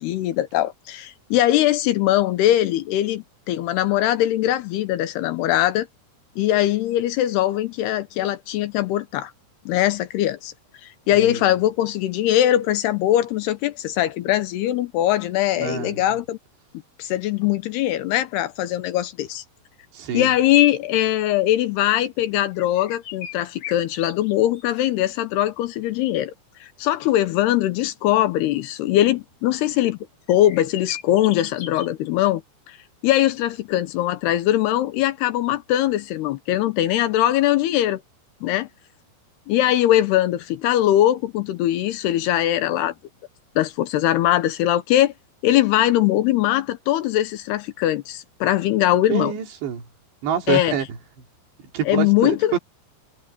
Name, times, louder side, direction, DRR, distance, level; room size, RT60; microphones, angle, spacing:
voice 1, 0.0-5.9 6.4-9.3 9.7-10.5 11.1-16.4 17.0-19.4 20.1-26.3 26.6-30.0 30.3-32.4 32.7-32.8 33.0-38.0 38.4-38.7 39.5-42.9 43.6-45.1 45.4-49.3 50.5-50.7 51.9-52.6, left 13 dB, 80° left, 2.9 m, -21 dB
voice 2, 11.1-11.5 15.6-16.0 19.9-20.3 49.1-49.8 50.2-50.9 51.7-52.6, right 9 dB, 85° right, 4.9 m, -26 dB
sound 1, 22.6-24.6 24.9-25.0 30.3-31.9, left 9 dB, 60° left, 3.7 m, -37 dB
omnidirectional pair, 4.9 m